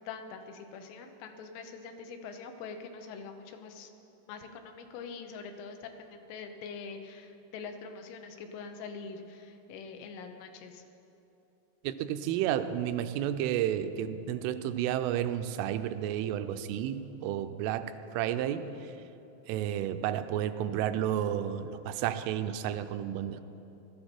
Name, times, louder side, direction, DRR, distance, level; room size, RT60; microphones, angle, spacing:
voice 1, 0.0-3.9 4.3-10.8, left 5 dB, 80° left, 6 dB, 3.3 m, -44 dB
voice 2, 11.8-18.7 19.5-23.4, right 10 dB, 90° right, 10 dB, 3.1 m, -31 dB
19.5 x 13.0 x 4.4 m, 2.9 s
omnidirectional pair, 5.6 m